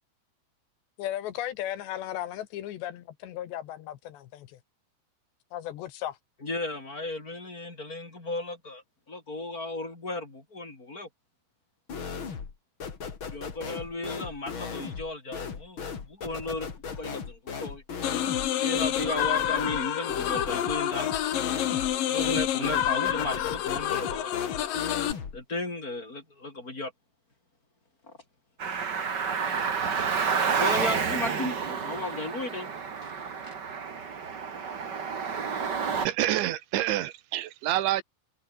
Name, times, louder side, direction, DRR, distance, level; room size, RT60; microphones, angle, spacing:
voice 1, 1.0-4.6 5.5-6.2, left 12 dB, 75° left, 3.5 m, -36 dB
voice 2, 6.4-11.1 13.2-17.8 18.4-21.1 22.1-24.3 25.3-26.9 28.0-28.2 30.2-32.7 33.0-33.1 33.4-33.5, left 2 dB, 20° left, 4.7 m, -35 dB
sound 1, 11.9-12.6 12.8-25.4, left 6 dB, 35° left, 2.5 m, -37 dB
sound 2, 18.0-25.1, left 11 dB, 60° left, 2.8 m, -28 dB
Car, 28.6-36.1, right 6 dB, 45° right, 1.3 m, -30 dB
voice 3, 36.0-38.0, right 14 dB, 85° right, 3.7 m, -27 dB
omnidirectional pair, 5.3 m